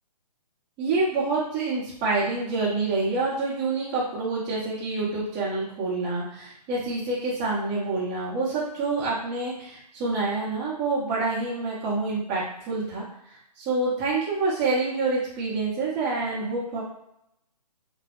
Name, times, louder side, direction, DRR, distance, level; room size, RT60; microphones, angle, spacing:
voice 1, 0.8-13.0 13.6-16.8, right 3 dB, 20° right, -9 dB, 0.9 m, -27 dB
2.2 x 2.1 x 3.0 m, 0.77 s
hypercardioid pair, 145°, 21 cm